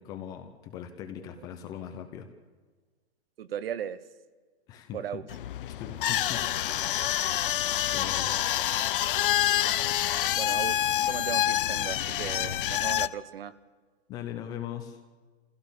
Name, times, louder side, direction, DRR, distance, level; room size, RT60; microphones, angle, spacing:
voice 1, 0.0-2.3 4.7-5.2 5.8-6.4 7.9-8.4 14.1-15.0, left 9 dB, 10° left, 7 dB, 0.5 m, -40 dB
voice 2, 3.4-4.0 4.9-5.2 10.3-13.5, right 9 dB, 60° right, 15 dB, 1.2 m, -37 dB
sound 1, 5.3-13.1, left 12 dB, 50° left, 0.7 m, -27 dB
24.5 x 16.5 x 7.1 m, 1.4 s
hypercardioid pair, 165°, 33 cm